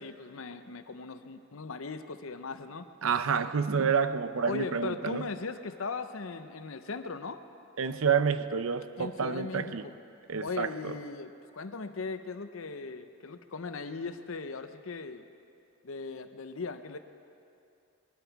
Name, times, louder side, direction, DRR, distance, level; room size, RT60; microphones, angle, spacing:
voice 1, 0.0-2.9 4.5-7.4 9.0-10.0 10.4-15.2 15.8-17.0, left 4 dB, 70° left, 10 dB, 0.7 m, -38 dB
voice 2, 3.0-5.3 7.8-9.9 10.3-11.0, right 6 dB, 70° right, 12 dB, 0.6 m, -29 dB
21.0 x 11.5 x 4.7 m, 2.6 s
head